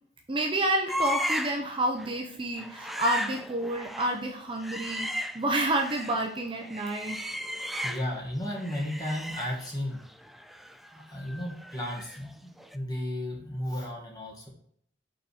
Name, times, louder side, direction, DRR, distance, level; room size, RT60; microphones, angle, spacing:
voice 1, 0.3-7.2, right 1 dB, 30° right, 2 dB, 0.7 m, -29 dB
sound 1, 0.9-1.7 2.0-2.2 2.6-6.2 6.6-8.2 8.5-12.3 12.6-12.8, equal, ahead, 0.3 m, -36 dB
voice 2, 7.8-10.0 10.9-14.5, left 1 dB, 20° left, -3 dB, 2.0 m, -34 dB
5.6 x 4.2 x 4.8 m, 0.63 s
head